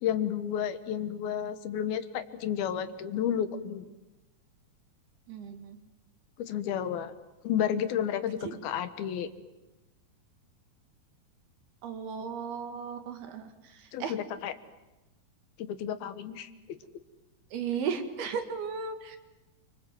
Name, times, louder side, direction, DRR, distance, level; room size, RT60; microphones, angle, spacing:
voice 1, 0.0-3.9 6.4-7.2 7.4-9.3 13.9-14.5 15.6-16.8, left 9 dB, 75° left, 10 dB, 3.0 m, -31 dB
voice 2, 5.3-5.8 8.4-8.6 11.8-13.5 14.0-14.1 17.5-19.2, right 6 dB, 80° right, 6 dB, 4.0 m, -35 dB
29.5 x 25.0 x 7.7 m, 1.0 s
omnidirectional pair, 4.5 m